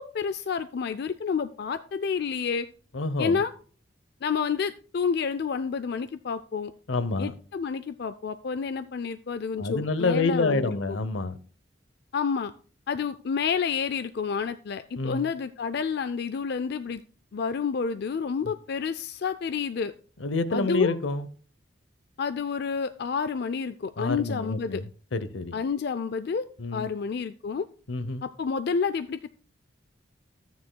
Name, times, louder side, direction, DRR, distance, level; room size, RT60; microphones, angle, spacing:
voice 1, 0.0-2.7 3.2-3.5 4.2-6.7 7.2-10.8 12.1-12.5 12.9-17.0 17.3-19.9 20.5-20.9 22.2-24.8 25.5-26.5 26.7-27.6 28.2-29.3, left 5 dB, 60° left, 0.4 m, -29 dB
voice 2, 2.9-3.4 6.9-7.3 9.6-11.4 15.0-15.3 18.4-18.5 20.2-21.3 24.0-25.6 26.6-26.9 27.9-28.2, left 3 dB, 85° left, 0.8 m, -28 dB
13.5 x 9.4 x 2.2 m
head